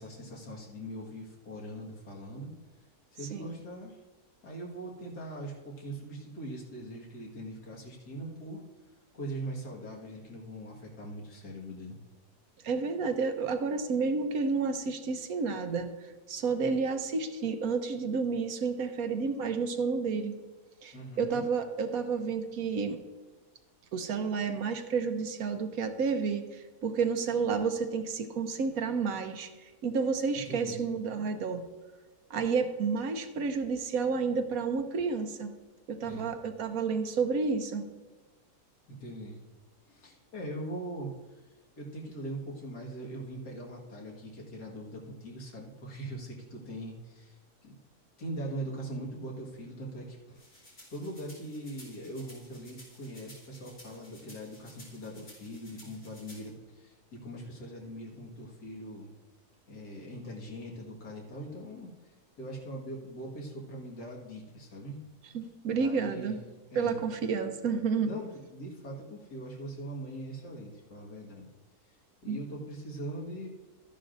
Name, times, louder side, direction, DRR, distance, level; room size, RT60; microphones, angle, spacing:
voice 1, 0.0-2.5 3.1-4.0 4.4-8.6 9.1-12.0 20.9-21.5 30.5-30.8 36.0-36.3 38.9-39.4 39.9-41.1 41.8-47.8 48.2-59.1 59.7-61.9 62.4-65.0 65.7-66.4 66.7-67.0 68.0-71.5 72.2-73.5, right 1 dB, 90° left, -2 dB, 2.4 m, -41 dB
voice 2, 12.6-15.9 16.3-20.3 20.8-23.0 23.9-29.5 29.8-31.6 32.3-35.5 35.9-37.9 65.3-66.4 66.7-68.1 72.3-72.4, right 5 dB, 70° right, 7 dB, 1.2 m, -30 dB
sound 1, 50.3-56.5, left 1 dB, 45° left, 3.3 m, -54 dB
13.5 x 10.5 x 2.6 m, 1.2 s
omnidirectional pair, 1.7 m